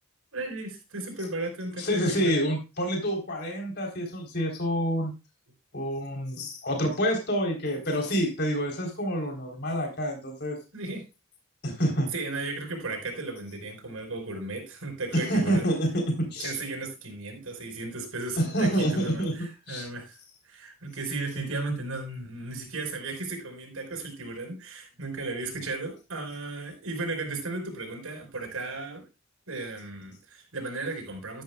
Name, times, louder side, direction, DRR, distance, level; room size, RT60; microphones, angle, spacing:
voice 1, 0.3-2.4 10.7-11.0 12.1-15.7 16.4-20.1 20.5-29.0 29.5-31.4, right 3 dB, 75° right, 1 dB, 4.9 m, -35 dB
voice 2, 1.8-5.1 5.7-10.6 11.6-12.1 15.1-16.6 18.4-19.3 19.7-19.9, equal, 45° left, 1 dB, 3.9 m, -27 dB
12.5 x 11.5 x 2.4 m, 0.27 s
head